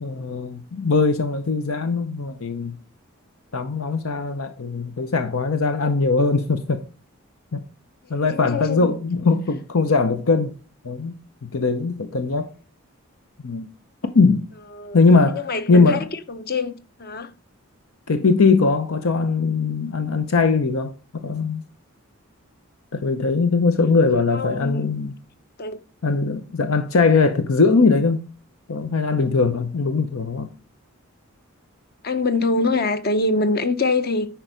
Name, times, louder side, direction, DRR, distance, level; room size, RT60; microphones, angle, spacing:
voice 1, 0.0-2.8 3.5-6.8 7.5-7.6 8.1-10.5 10.8-12.5 13.4-13.7 14.1-14.4 14.9-15.4 15.7-16.1 18.1-21.6 22.9-25.2 26.0-28.3 28.7-30.5, left 4 dB, 80° left, 0.8 m, -20 dB
voice 2, 8.0-9.0 14.7-15.0 15.3-16.7 17.0-17.3 24.3-24.9 25.6-25.8 32.0-34.3, left 3 dB, 45° left, 0.8 m, -24 dB
10.5 x 4.6 x 5.1 m
head